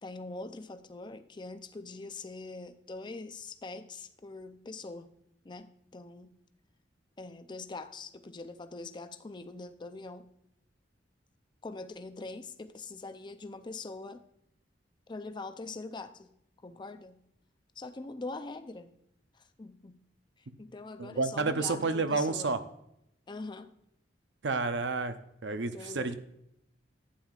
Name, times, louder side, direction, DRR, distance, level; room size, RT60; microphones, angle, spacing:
voice 1, 0.0-5.1 5.4-6.3 7.2-10.3 11.6-14.2 15.1-16.3 16.6-17.2 17.8-18.9 19.3-20.0 20.4-22.6 23.3-23.7 25.7-26.1, left 3 dB, 25° left, 0.5 m, -43 dB
voice 2, 21.0-22.6 24.4-25.2 25.4-26.1, right 3 dB, 70° right, 0.7 m, -30 dB
11.5 x 8.9 x 2.4 m
head